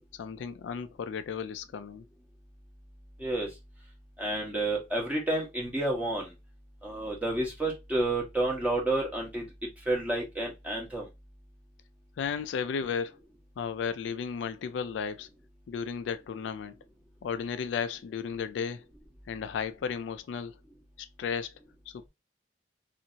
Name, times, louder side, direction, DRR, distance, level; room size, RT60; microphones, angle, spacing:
voice 1, 0.1-2.0 12.2-13.2 13.6-15.3 15.7-16.8 17.2-18.9 19.3-20.6 21.0-21.6 21.9-22.1, left 6 dB, 85° left, 0.3 m, -34 dB
voice 2, 4.2-6.3 6.8-9.4 9.9-11.0, right 2 dB, 10° right, 1.0 m, -30 dB
2.7 x 2.5 x 2.8 m
head